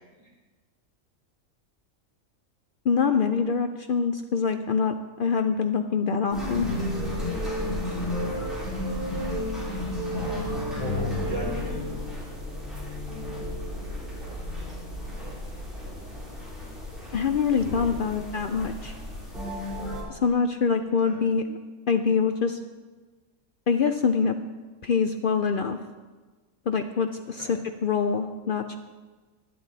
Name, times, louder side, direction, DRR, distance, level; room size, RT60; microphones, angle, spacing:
voice 1, 2.9-6.7 17.1-18.9 20.1-21.6 21.9-22.6 23.7-24.3 24.8-25.8 26.7-28.7, left 5 dB, 70° left, 7 dB, 0.5 m, -25 dB
sound 1, 6.3-20.0, left 1 dB, ahead, 4.4 m, -32 dB
voice 2, 10.1-12.1 21.0-21.2 27.4-27.5, right 1 dB, 55° right, -5 dB, 4.3 m, -37 dB
12.0 x 11.0 x 4.0 m, 1.3 s
omnidirectional pair, 1.4 m